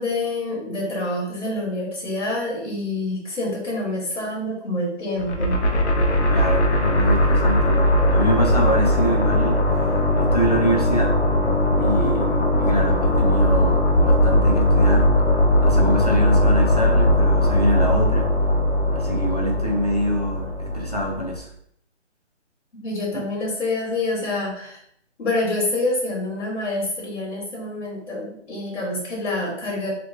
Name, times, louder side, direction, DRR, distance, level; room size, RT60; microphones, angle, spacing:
voice 1, 0.0-5.6 22.7-24.8 25.2-30.0, left 2 dB, 80° left, -3 dB, 1.2 m, -27 dB
sound 1, 5.2-21.4, left 1 dB, 65° left, 0.7 m, -19 dB
voice 2, 6.3-9.6 10.2-11.2 11.7-15.1 15.6-18.3 18.9-21.5, right 1 dB, 35° left, -2 dB, 0.4 m, -25 dB
2.9 x 2.5 x 2.5 m, 0.69 s
hypercardioid pair, 175°, 36 cm